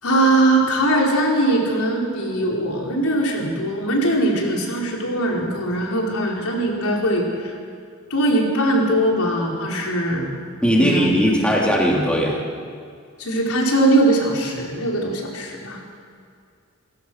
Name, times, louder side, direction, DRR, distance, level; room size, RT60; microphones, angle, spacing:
voice 1, 0.0-7.5 8.1-10.3 10.7-11.1 13.2-15.9, right 1 dB, 85° left, -2 dB, 4.9 m, -21 dB
voice 2, 10.6-12.4, equal, 5° left, -3 dB, 3.4 m, -18 dB
29.0 x 16.5 x 6.4 m, 2.2 s
head